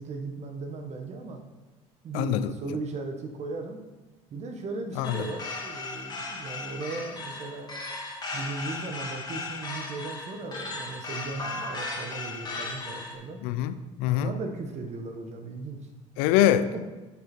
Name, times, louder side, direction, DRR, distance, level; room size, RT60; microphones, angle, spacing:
voice 1, 0.0-1.4 2.0-3.8 4.3-7.7 8.3-13.4 14.0-15.8 16.7-16.8, right 3 dB, 50° right, 4 dB, 1.5 m, -37 dB
voice 2, 2.1-2.5 5.0-5.3 13.4-14.3 16.2-16.7, left 11 dB, 80° left, 12 dB, 0.6 m, -24 dB
sound 1, 5.0-13.2, left 2 dB, 25° left, 2.4 m, -36 dB
8.2 x 6.6 x 4.6 m, 1.2 s
supercardioid pair, 85°, 15 cm